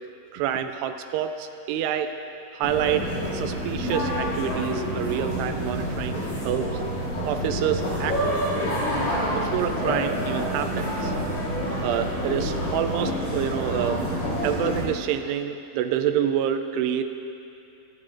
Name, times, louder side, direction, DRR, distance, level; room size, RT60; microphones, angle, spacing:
voice 1, 0.3-2.2 2.5-6.8 7.3-8.2 9.3-11.1 11.8-17.0, right 9 dB, 85° right, 8 dB, 2.6 m, -27 dB
sound 1, 2.6-14.8, equal, 40° left, 2.9 m, -28 dB
23.5 x 11.0 x 2.5 m, 2.7 s
omnidirectional pair, 4.8 m